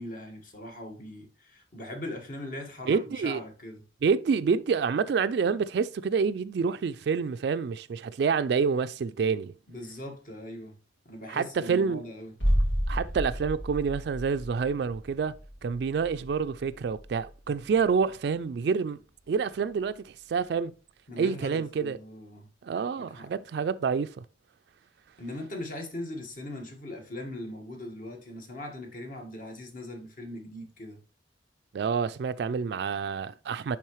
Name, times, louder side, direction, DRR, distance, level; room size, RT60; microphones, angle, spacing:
voice 1, 0.0-3.8 9.7-10.7 11.0-12.3 21.1-22.5 22.9-23.3 25.2-31.0, left 1 dB, 45° left, 1.5 m, -40 dB
voice 2, 2.9-3.4 4.0-9.5 11.3-12.0 12.9-15.3 15.6-19.0 19.3-20.7 21.2-22.0 22.6-24.2 31.7-33.8, right 5 dB, 60° right, 0.3 m, -28 dB
sound 1, 12.4-18.1 18.4-18.5, equal, 85° left, 2.1 m, -31 dB
10.0 x 3.6 x 3.1 m
head